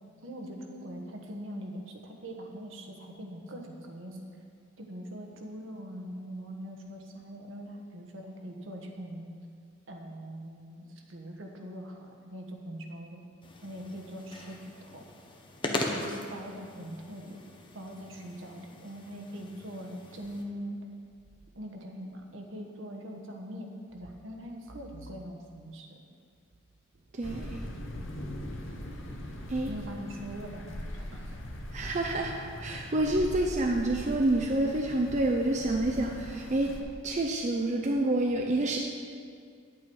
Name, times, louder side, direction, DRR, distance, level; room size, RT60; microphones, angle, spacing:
voice 1, 0.2-4.2 4.8-9.3 9.9-13.2 13.6-15.0 15.6-17.4 17.7-20.8 21.5-26.0 29.7-30.9 31.1-31.4, equal, 65° right, 2 dB, 1.2 m, -42 dB
sound 1, 13.4-20.4, left 2 dB, 25° left, 0.8 m, -40 dB
voice 2, 27.1-27.6 29.5-29.7 31.7-32.3 32.6-36.7 37.0-38.8, right 2 dB, 35° right, 1 dB, 0.6 m, -28 dB
sound 2, 27.2-36.8, left 1 dB, 65° left, 1.0 m, -41 dB
9.5 x 8.4 x 4.6 m, 2.2 s
head